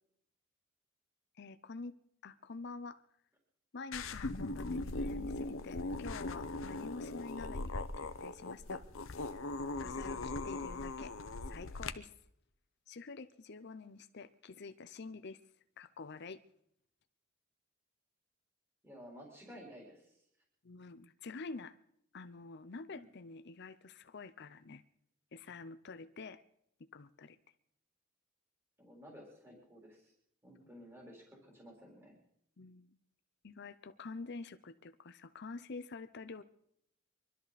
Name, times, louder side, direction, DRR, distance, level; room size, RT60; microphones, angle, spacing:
voice 1, 1.4-2.0 2.2-3.0 3.7-8.9 9.8-11.1 11.5-12.1 12.9-15.4 15.8-16.4 20.6-21.8 22.1-24.8 25.3-26.4 26.9-27.4 30.6-30.7 32.6-33.0 33.4-36.4, left 4 dB, 55° left, 11 dB, 0.6 m, -48 dB
sound 1, 3.9-11.9, left 2 dB, 80° left, 0.9 m, -39 dB
voice 2, 18.8-20.2 22.9-23.1 28.8-30.1 30.4-32.2, equal, 10° right, -2 dB, 3.9 m, -54 dB
24.0 x 12.5 x 4.1 m, 0.71 s
head